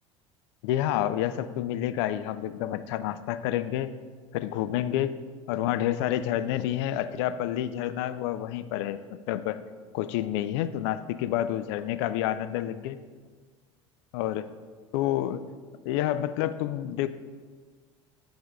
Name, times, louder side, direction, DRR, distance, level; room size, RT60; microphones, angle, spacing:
voice 1, 0.6-3.9 4.3-5.2 5.5-9.0 9.3-9.6 9.9-13.0 14.1-14.5 14.9-15.4 15.9-17.1, left 12 dB, 60° left, 13 dB, 0.4 m, -29 dB
9.9 x 3.4 x 3.8 m, 1.5 s
figure-of-eight pair, 65°, 16 cm